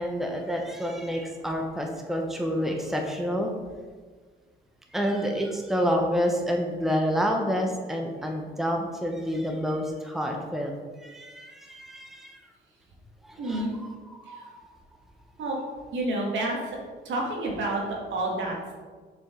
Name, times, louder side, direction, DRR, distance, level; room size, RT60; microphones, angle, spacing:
voice 1, 0.0-3.5 4.9-10.7 11.0-12.4 13.2-14.7, equal, ahead, 2 dB, 0.9 m, -29 dB
voice 2, 13.4-13.8 14.3-14.4 15.4-15.6 15.9-16.6 17.1-18.7, right 2 dB, 70° right, -1 dB, 1.8 m, -29 dB
6.9 x 5.2 x 3.7 m, 1.5 s
cardioid pair, 90°, 20 cm